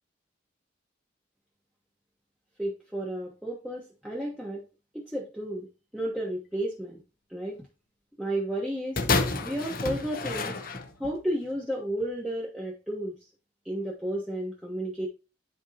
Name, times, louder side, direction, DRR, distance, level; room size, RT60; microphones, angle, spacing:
voice 1, 2.6-4.7 4.9-7.0 7.3-7.6 8.2-9.1 9.4-10.6 11.0-13.2 13.6-15.1, right 1 dB, 5° right, -5 dB, 1.2 m, -32 dB
sound 1, 9.0-11.2 12.0-12.1, left 3 dB, 50° left, 0.9 m, -29 dB
10.0 x 4.5 x 2.8 m, 0.30 s
head